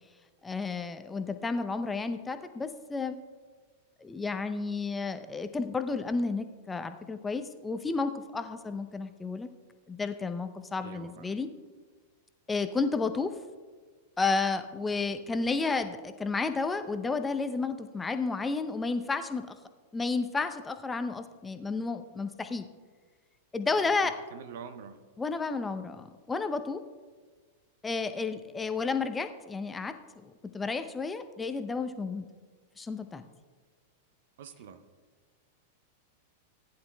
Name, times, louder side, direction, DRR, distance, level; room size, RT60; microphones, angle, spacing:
voice 1, 0.4-3.2 4.0-9.5 9.9-11.5 12.5-13.3 14.2-19.5 19.9-22.7 23.5-24.2 25.2-26.8 27.8-29.9 30.2-32.3 32.8-33.2, left 4 dB, 15° left, 9 dB, 0.6 m, -32 dB
voice 2, 10.8-11.3 23.8-25.0 34.4-34.8, right 7 dB, 55° right, 10 dB, 0.8 m, -46 dB
18.5 x 10.5 x 2.2 m, 1.4 s
figure-of-eight pair, 95°, 0 cm